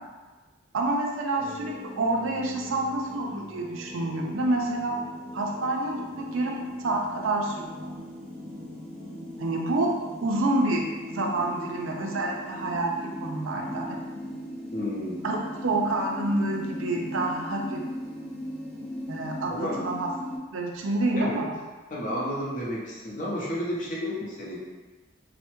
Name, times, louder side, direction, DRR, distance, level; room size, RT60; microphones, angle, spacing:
voice 1, 0.7-5.0 5.3-7.9 9.4-9.9 10.2-14.0 15.2-17.8 19.1-20.1 20.5-21.6, right 2 dB, 70° right, 0 dB, 0.4 m, -28 dB
sound 1, 1.4-20.4, left 1 dB, 5° left, 0.7 m, -39 dB
voice 2, 14.7-15.2 19.5-19.8 21.2-21.4 21.9-24.6, equal, 40° left, -5 dB, 0.6 m, -31 dB
3.2 x 2.1 x 3.0 m, 1.3 s
head